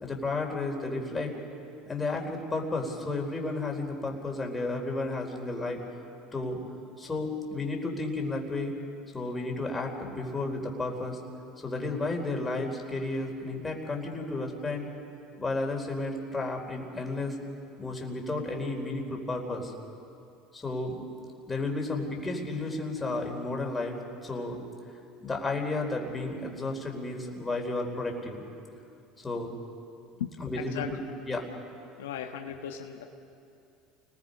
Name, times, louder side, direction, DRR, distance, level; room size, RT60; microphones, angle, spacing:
voice 1, 0.0-1.3 1.9-5.8 6.3-6.6 7.0-8.7 9.1-11.2 11.6-14.9 15.4-17.4 17.8-19.7 20.5-21.0 21.5-24.6 25.2-28.4 29.2-29.5 30.4-31.0 31.2-31.5, left 2 dB, 20° left, 1 dB, 4.3 m, -32 dB
voice 2, 30.2-30.9 32.0-33.0, left 9 dB, 90° left, 3 dB, 1.3 m, -37 dB
29.5 x 20.0 x 5.4 m, 2.6 s
supercardioid pair, 90°, 0 cm